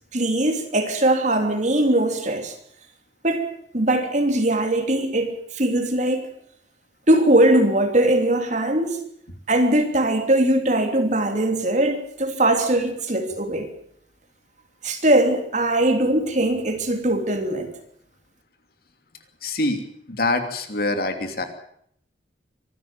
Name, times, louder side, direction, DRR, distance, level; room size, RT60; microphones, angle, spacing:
voice 1, 0.1-2.5 3.2-3.5 3.7-6.3 7.1-9.0 9.5-13.7 14.8-17.7, right 1 dB, 45° right, 3.1 m, -20 dB
voice 2, 19.4-21.5, left 2 dB, 55° left, 2.9 m, -25 dB
24.0 x 13.0 x 8.7 m
head